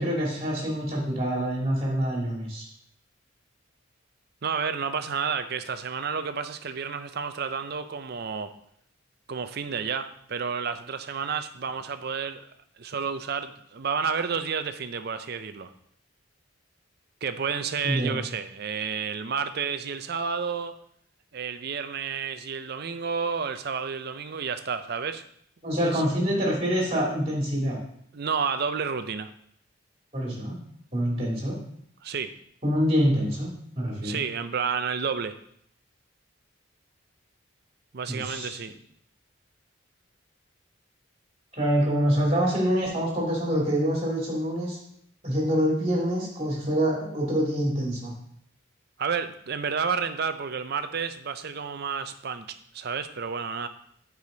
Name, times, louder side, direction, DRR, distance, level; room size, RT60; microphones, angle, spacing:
voice 1, 0.0-2.7 17.8-18.2 25.6-27.8 30.1-30.6 30.9-31.6 32.6-34.2 38.1-38.5 41.5-44.8 45.2-48.1, equal, 30° right, -3 dB, 2.6 m, -26 dB
voice 2, 4.4-8.5 9.3-12.5 12.8-15.7 17.2-20.8 21.3-25.2 25.8-26.0 28.1-29.3 32.0-32.3 34.0-35.3 37.9-38.7 49.0-53.7, right 6 dB, 50° right, 10 dB, 0.5 m, -30 dB
8.4 x 4.9 x 3.9 m, 0.68 s
head